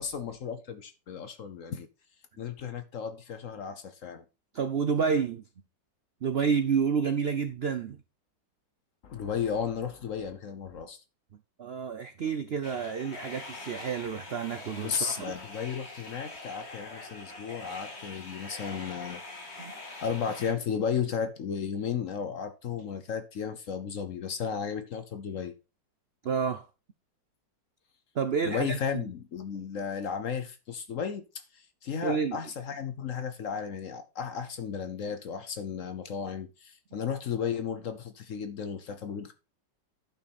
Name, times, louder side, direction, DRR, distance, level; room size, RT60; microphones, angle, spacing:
voice 1, 0.0-1.9 2.4-4.2 9.0-11.0 14.8-19.2 20.0-25.5 28.4-31.2 31.5-39.3, left 7 dB, 55° left, 1.0 m, -34 dB
voice 2, 4.5-5.4 6.2-8.0 11.6-15.3 19.6-19.7 26.2-26.6 28.2-29.0 32.0-32.4, right 6 dB, 85° right, 0.5 m, -29 dB
sound 1, 12.6-20.5, left 2 dB, 35° left, 2.0 m, -44 dB
10.5 x 5.9 x 4.2 m
omnidirectional pair, 2.0 m